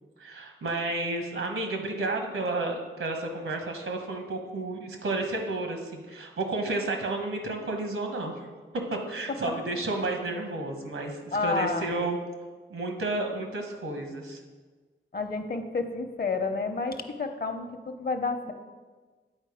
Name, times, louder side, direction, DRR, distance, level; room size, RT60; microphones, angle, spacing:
voice 1, 0.2-8.4 8.9-12.2 12.7-14.4, right 2 dB, 80° right, 3 dB, 1.2 m, -31 dB
voice 2, 11.3-12.1 15.1-18.5, left 3 dB, 50° left, 7 dB, 0.8 m, -30 dB
8.9 x 4.2 x 5.0 m, 1.4 s
cardioid pair, 50°, 21 cm